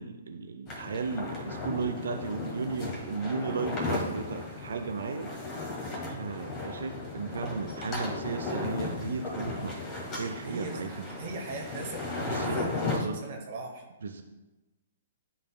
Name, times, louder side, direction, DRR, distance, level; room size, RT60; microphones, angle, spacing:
voice 1, 0.0-5.3 6.2-9.8 10.2-11.1 12.3-13.2 14.0-14.2, right 4 dB, 70° right, 6 dB, 0.4 m, -35 dB
sound 1, 0.7-13.0, left 2 dB, 30° left, 1.7 m, -35 dB
voice 2, 10.4-13.8, right 3 dB, 55° right, 2 dB, 1.0 m, -40 dB
11.0 x 4.1 x 2.2 m, 1.1 s
figure-of-eight pair, 120°, 0 cm